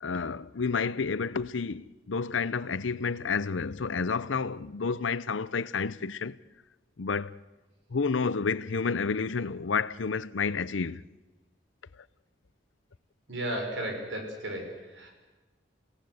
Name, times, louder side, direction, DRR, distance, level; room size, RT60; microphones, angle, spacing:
voice 1, 0.0-6.3 7.0-7.4 7.9-11.0, left 5 dB, 90° left, 0.7 m, -30 dB
voice 2, 13.3-15.1, right 1 dB, 80° right, 6.0 m, -34 dB
29.0 x 17.5 x 7.9 m
head